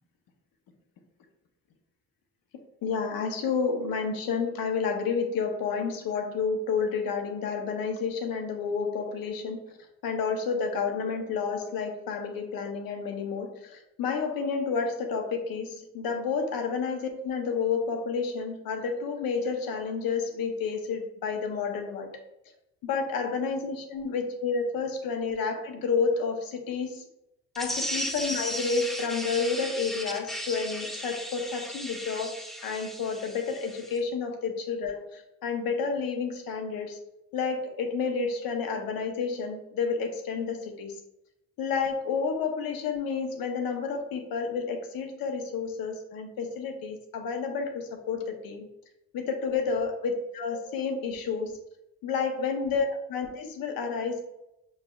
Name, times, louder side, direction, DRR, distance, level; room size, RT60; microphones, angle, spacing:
voice 1, 2.8-9.6 10.0-15.7 15.9-22.1 22.8-27.0 27.6-37.0 37.3-40.9 41.6-48.6 49.1-51.6 52.0-54.2, left 5 dB, 85° left, 5 dB, 0.8 m, -30 dB
sound 1, 27.5-34.0, equal, ahead, 0.3 m, -36 dB
6.3 x 3.2 x 2.3 m, 0.87 s
cardioid pair, 140°, 34 cm